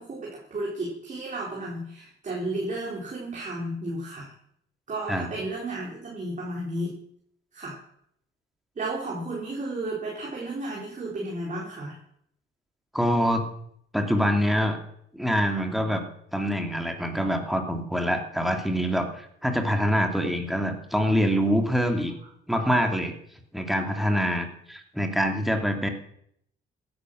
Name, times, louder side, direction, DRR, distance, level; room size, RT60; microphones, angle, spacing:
voice 1, 0.0-4.3 4.9-7.0 7.5-7.8 8.8-12.0, right 2 dB, 35° right, -3 dB, 4.3 m, -33 dB
voice 2, 12.9-13.5 13.9-14.8 15.1-16.0 16.3-22.1 22.5-23.1 23.5-25.9, equal, ahead, 4 dB, 2.8 m, -25 dB
16.0 x 10.5 x 6.4 m, 0.71 s
cardioid pair, 90°, 21 cm